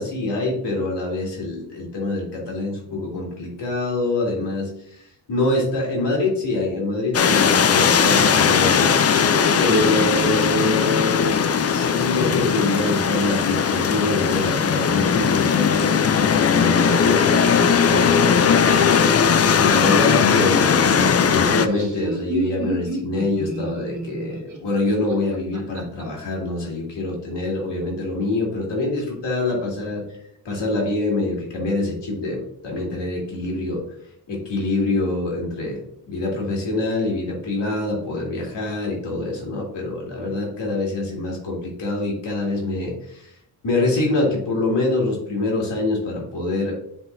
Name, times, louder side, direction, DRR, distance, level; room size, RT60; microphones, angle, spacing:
voice 1, 0.0-9.0 9.6-19.1 19.6-30.0 30.4-33.8 34.3-35.8 36.1-43.3 43.6-46.7, left 2 dB, 80° left, -2 dB, 2.4 m, -25 dB
sound 1, 7.1-21.7, left 6 dB, 40° left, 0.4 m, -18 dB
Laughter, 21.4-26.0, right 1 dB, 45° right, 1.7 m, -30 dB
10.0 x 3.7 x 2.6 m, 0.71 s
wide cardioid pair, 140°, 42 cm